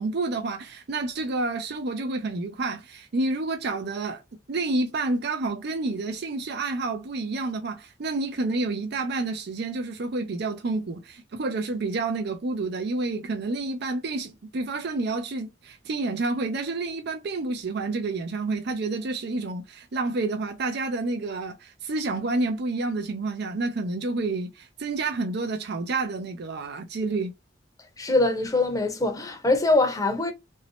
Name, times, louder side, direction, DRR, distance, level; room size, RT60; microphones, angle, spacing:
voice 1, 0.0-4.2 4.5-27.3, right 3 dB, 60° right, 0.5 m, -29 dB
voice 2, 28.0-30.3, left 2 dB, 20° left, 0.7 m, -23 dB
3.0 x 2.7 x 2.8 m
head